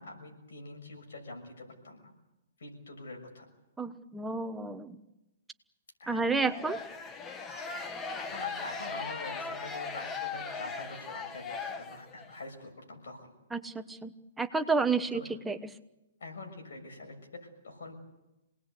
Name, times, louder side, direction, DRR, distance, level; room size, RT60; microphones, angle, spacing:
voice 1, 0.0-2.1 2.6-3.5 6.0-6.2 8.2-13.3 15.1-15.3 16.2-17.9, left 2 dB, 75° left, 3 dB, 6.7 m, -45 dB
voice 2, 3.8-5.0 6.1-6.8 13.5-15.6, right 4 dB, 5° right, 7 dB, 1.2 m, -31 dB
sound 1, 6.4-12.4, left 4 dB, 20° left, 1.3 m, -38 dB
27.5 x 19.5 x 8.3 m, 0.97 s
hypercardioid pair, 140°, 0 cm